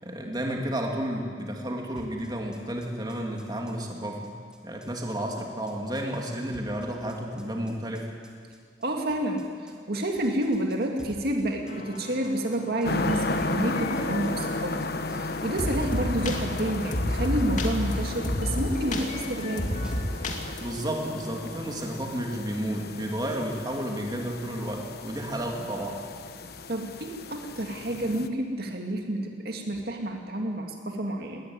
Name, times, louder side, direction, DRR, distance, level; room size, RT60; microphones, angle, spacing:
voice 1, 0.0-4.4 4.6-8.1 20.6-26.0, right 1 dB, 25° right, 1 dB, 2.7 m, -32 dB
sound 1, 2.0-20.2, equal, 5° right, 2.4 m, -50 dB
voice 2, 8.8-14.8 15.0-19.7 26.7-31.5, right 1 dB, 60° right, 2 dB, 2.2 m, -29 dB
sound 2, 11.7-20.6, left 1 dB, 45° left, 2.5 m, -32 dB
sound 3, 12.8-28.3, left 2 dB, 60° left, 1.1 m, -34 dB
20.5 x 18.5 x 9.8 m, 2.1 s
head